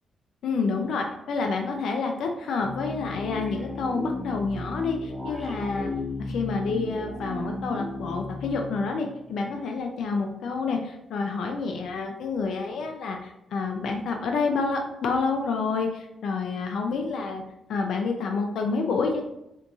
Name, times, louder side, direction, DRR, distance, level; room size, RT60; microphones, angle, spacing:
voice 1, 0.4-5.9 6.2-17.4 17.7-19.2, left 4 dB, 75° left, 3 dB, 0.4 m, -28 dB
sound 1, 2.6-9.7, left 2 dB, 5° right, 0.7 m, -35 dB
4.5 x 2.6 x 3.4 m, 0.86 s
cardioid pair, 145°, 0 cm